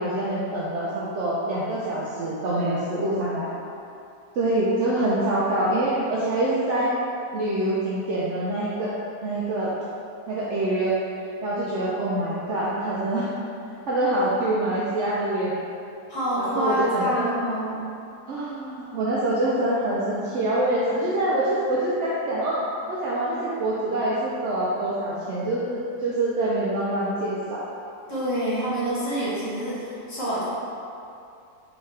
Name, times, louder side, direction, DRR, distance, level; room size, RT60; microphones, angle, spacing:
voice 1, 0.0-3.5 4.3-6.9 7.3-8.9 9.2-9.7 10.3-11.0 11.4-13.3 13.9-15.5 16.4-17.3 18.3-22.6 22.9-27.6, right 1 dB, 65° right, -7 dB, 0.7 m, -25 dB
voice 2, 2.6-3.0 16.1-17.8 28.1-30.4, equal, 55° left, -10 dB, 1.4 m, -27 dB
3.6 x 3.4 x 3.2 m, 2.6 s
omnidirectional pair, 1.7 m